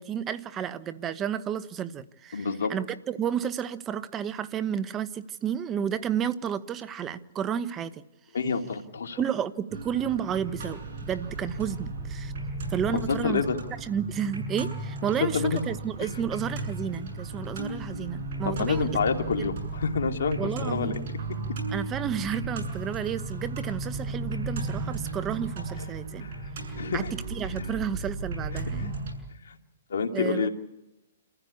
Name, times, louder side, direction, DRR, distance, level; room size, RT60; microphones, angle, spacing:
voice 1, 0.0-8.1 9.2-12.3 12.7-13.4 13.8-18.9 19.4-19.5 20.4-21.1 21.7-26.3 26.9-28.9 30.1-30.5, right 8 dB, 20° right, 1.1 m, -31 dB
voice 2, 2.3-2.7 8.3-9.2 12.9-13.6 15.2-15.6 18.4-21.0 26.2-26.4 26.8-27.0 27.5-27.7 28.5-28.6 29.4-29.6 29.9-30.5, left 5 dB, 75° left, 2.6 m, -28 dB
sound 1, 9.7-29.1, right 2 dB, 55° right, 7.2 m, -35 dB
28.0 x 15.0 x 8.5 m
hypercardioid pair, 140°, 0 cm